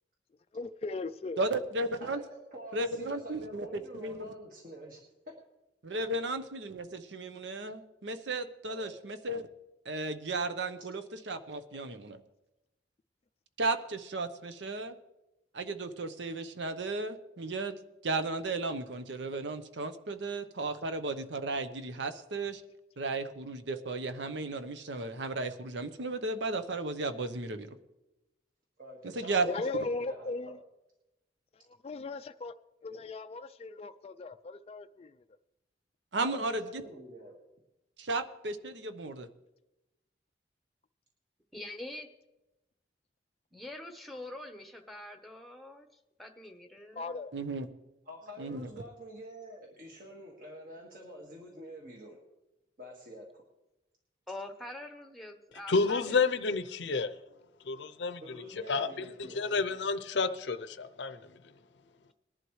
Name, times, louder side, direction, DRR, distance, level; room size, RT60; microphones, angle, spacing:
voice 1, 0.5-1.4 29.5-30.6 31.8-32.5 32.8-35.2 46.9-47.3, left 3 dB, 35° left, 0.3 m, -37 dB
voice 2, 1.4-2.2 2.7-4.3 5.8-9.5 9.8-11.0 11.3-12.2 13.6-15.0 15.5-17.8 18.0-22.6 23.0-27.7 29.2-29.5 36.1-36.8 38.0-39.3 47.3-47.7 48.4-48.7, right 2 dB, 80° right, 0.9 m, -34 dB
voice 3, 2.0-5.0 5.9-6.0 8.7-8.9 28.8-30.5 36.2-37.3 48.0-52.2 52.8-53.4 58.2-59.4, right 1 dB, 50° right, 1.8 m, -47 dB
voice 4, 41.5-42.1 43.5-45.9 46.2-47.1 54.3-56.2 60.2-60.3, left 1 dB, ahead, 0.9 m, -44 dB
voice 5, 55.7-57.1 57.6-58.4 58.7-61.3, left 4 dB, 75° left, 0.6 m, -30 dB
20.0 x 11.5 x 3.2 m
head